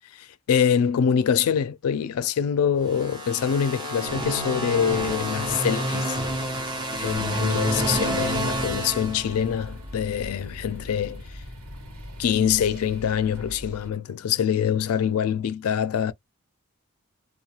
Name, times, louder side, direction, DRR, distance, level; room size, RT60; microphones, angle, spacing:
voice 1, 0.2-6.2 7.0-11.4 12.2-16.1, left 8 dB, 90° left, 0.4 m, -25 dB
sound 1, 2.8-9.7, right 1 dB, 20° right, 0.8 m, -28 dB
sound 2, 6.9-13.9, left 1 dB, 85° right, 1.2 m, -41 dB
2.3 x 2.2 x 2.8 m
head